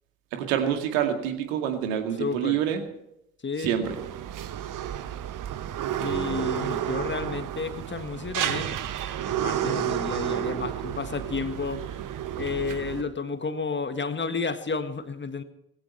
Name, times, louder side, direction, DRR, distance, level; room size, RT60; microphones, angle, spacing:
voice 1, 0.3-2.8 3.6-4.0, right 9 dB, 70° right, 5 dB, 2.3 m, -27 dB
voice 2, 2.2-2.6 3.4-3.8 6.0-11.9 12.4-15.4, left 4 dB, 25° left, 9 dB, 1.7 m, -32 dB
sound 1, 3.8-13.0, right 11 dB, 45° right, 1.2 m, -31 dB
20.0 x 16.5 x 4.3 m, 0.81 s
figure-of-eight pair, 45°, 43 cm